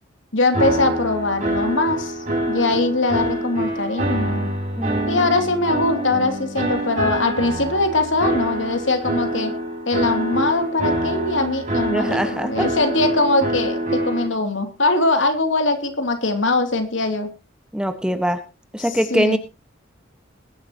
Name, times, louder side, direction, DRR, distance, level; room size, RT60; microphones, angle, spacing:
voice 1, 0.3-4.5 5.1-9.6 9.9-17.3 19.1-19.4, left 2 dB, 75° left, 7 dB, 2.7 m, -21 dB
sound 1, 0.5-14.3, right 1 dB, 40° right, 7.0 m, -25 dB
voice 2, 4.8-5.4 11.9-12.7 17.7-18.4 18.7-19.4, equal, 5° right, 8 dB, 1.3 m, -23 dB
21.0 x 11.0 x 2.9 m, 0.29 s
head